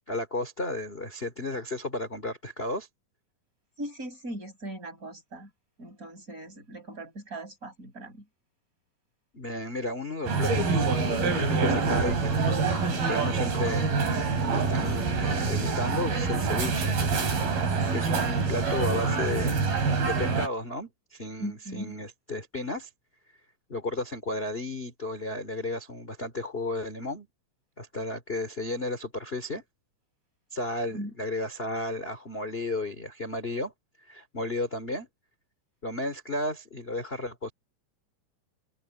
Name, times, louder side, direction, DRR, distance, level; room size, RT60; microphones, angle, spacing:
voice 1, 0.1-2.9 9.3-12.6 12.9-13.9 14.5-16.9 17.9-19.7 20.1-22.9 23.7-27.3 27.8-29.6 30.5-33.7 34.0-35.1 35.8-37.5, left 2 dB, 15° left, 3.0 m, -33 dB
voice 2, 3.8-5.5 5.8-8.2 21.4-22.0 30.9-31.1, right 1 dB, 20° right, 6.9 m, -39 dB
Coffee Shop Ambience, 10.3-20.5, right 4 dB, 85° right, 6.8 m, -26 dB
open air
omnidirectional pair, 4.1 m